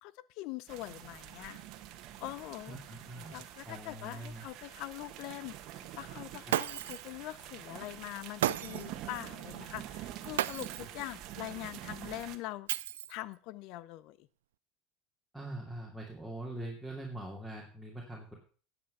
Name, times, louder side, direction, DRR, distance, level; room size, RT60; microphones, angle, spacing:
voice 1, 0.0-1.6 2.2-2.8 3.3-12.7 13.1-14.3, left 17 dB, 65° left, 19 dB, 0.6 m, -43 dB
sound 1, 0.7-12.4, right 12 dB, 60° right, 1.3 m, -46 dB
voice 2, 2.7-4.4 6.5-6.6 10.8-10.9 15.3-18.4, right 1 dB, ahead, -2 dB, 3.0 m, -43 dB
Shatter, 6.5-7.1 8.4-9.0 10.4-11.0 12.7-13.3, right 13 dB, 90° right, 0.4 m, -33 dB
10.5 x 8.0 x 5.5 m, 0.39 s
supercardioid pair, 95°, 0 cm